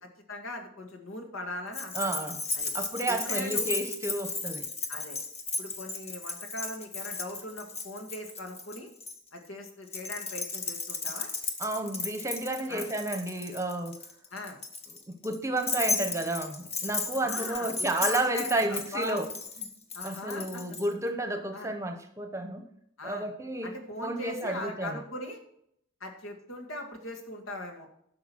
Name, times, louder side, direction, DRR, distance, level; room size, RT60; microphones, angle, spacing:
voice 1, 0.0-2.1 2.5-2.7 3.1-3.7 4.9-5.2 5.6-8.9 9.3-11.3 12.7-12.8 14.3-14.6 17.2-19.2 19.9-20.6 21.5-21.7 23.0-23.3 23.6-25.4 26.0-27.9, left 1 dB, 80° left, 3 dB, 2.2 m, -40 dB
Keys jangling, 1.7-9.1 9.9-20.9, left 3 dB, 30° left, 1.3 m, -35 dB
voice 2, 1.9-2.4 2.7-4.7 11.6-14.0 15.1-19.3 19.6-19.7 20.0-22.7 23.0-23.7 24.0-25.0, right 1 dB, 15° right, 7 dB, 1.0 m, -31 dB
11.5 x 6.5 x 6.3 m, 0.72 s
head